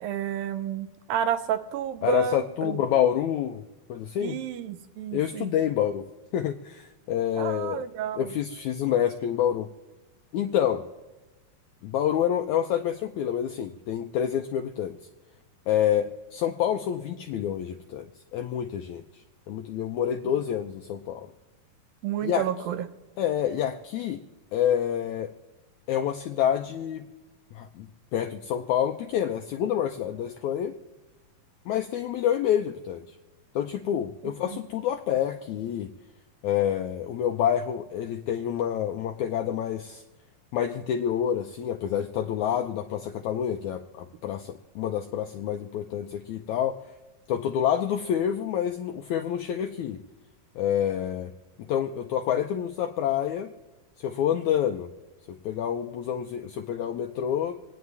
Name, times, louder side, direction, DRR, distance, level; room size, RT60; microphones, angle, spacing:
voice 1, 0.0-2.8 4.2-5.5 7.4-8.3 22.0-22.8 34.5-34.6, right 9 dB, 80° right, 10 dB, 2.4 m, -30 dB
voice 2, 2.0-3.6 3.9-4.4 5.1-6.0 6.3-7.9 8.1-9.7 10.3-10.8 11.8-15.0 15.7-19.0 19.5-21.3 22.2-22.5 23.2-24.2 24.5-25.3 25.9-27.1 27.5-30.7 31.7-33.0 33.6-35.9 36.4-40.0 40.5-46.8 47.3-50.0 50.6-51.3 51.7-53.5 54.0-54.9 55.4-57.5, left 9 dB, 85° left, 5 dB, 1.7 m, -27 dB
27.5 x 9.5 x 3.4 m, 1.2 s
omnidirectional pair, 4.2 m